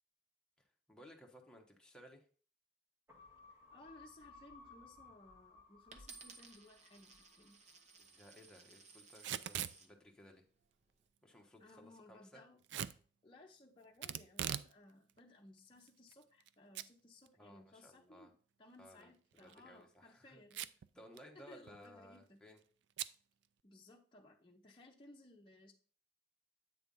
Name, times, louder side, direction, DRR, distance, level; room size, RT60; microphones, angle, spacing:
voice 1, 0.6-2.3 8.0-10.4 11.2-12.4 17.4-18.3 18.8-20.4 20.9-22.6, equal, 5° left, 0 dB, 1.0 m, -59 dB
sound 1, 3.1-7.8 8.1-8.2, left 4 dB, 15° right, 1.7 m, -60 dB
voice 2, 3.7-7.7 11.6-12.6 13.2-18.3 18.6-20.7 21.3-22.5 23.6-25.7, left 2 dB, 25° left, -1 dB, 0.7 m, -60 dB
Coin (dropping), 5.9-9.9 10.6-11.1, right 4 dB, 40° right, 0.8 m, -58 dB
Packing tape duct tape / Tearing, 9.1-9.8 12.7-13.0 14.0-14.7 15.1-15.2 15.9-16.5 16.8-16.9 17.3-17.4 19.3-19.6 20.5-20.9 21.2-21.3 21.5-21.9 23.0-23.2, right 10 dB, 80° right, 0.3 m, -41 dB
8.3 x 3.4 x 5.3 m, 0.43 s
head